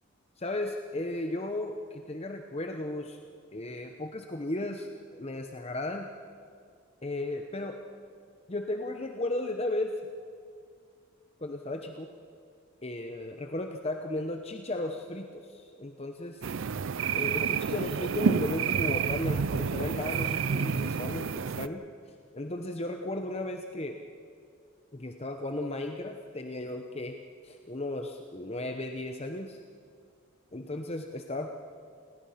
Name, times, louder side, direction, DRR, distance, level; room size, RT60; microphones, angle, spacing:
voice 1, 0.4-3.2 3.5-6.1 7.0-7.8 8.5-9.9 11.4-12.1 12.8-16.5 16.7-16.8 17.1-21.8 22.3-24.0 24.9-27.2 27.4-29.6 30.5-31.5, left 1 dB, 30° left, 4 dB, 0.9 m, -35 dB
sound 1, 16.4-21.7, right 6 dB, 65° right, 0.5 m, -29 dB
28.0 x 19.0 x 5.8 m, 2.1 s
head